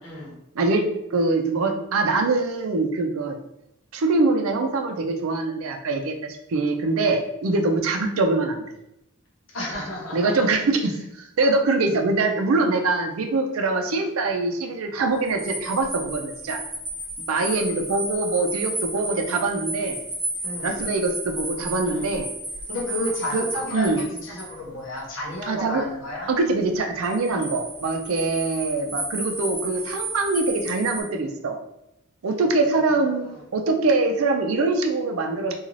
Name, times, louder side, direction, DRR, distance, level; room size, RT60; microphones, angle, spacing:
voice 1, 0.0-0.3 9.5-10.5 20.4-20.8 21.8-22.1 22.7-26.3 32.4-33.1 33.3-33.4, left 1 dB, 70° left, -3 dB, 0.9 m, -32 dB
voice 2, 1.1-3.4 3.9-8.6 10.1-16.6 17.3-20.0 20.6-22.3 23.3-23.4 23.7-24.0 25.5-25.8 26.3-31.6 32.2-33.3 33.5-35.5, right 3 dB, 90° right, 5 dB, 0.4 m, -23 dB
sound 1, 15.2-24.5 27.0-31.0, right 1 dB, 10° right, 0.5 m, -33 dB
2.5 x 2.3 x 3.1 m, 0.83 s
head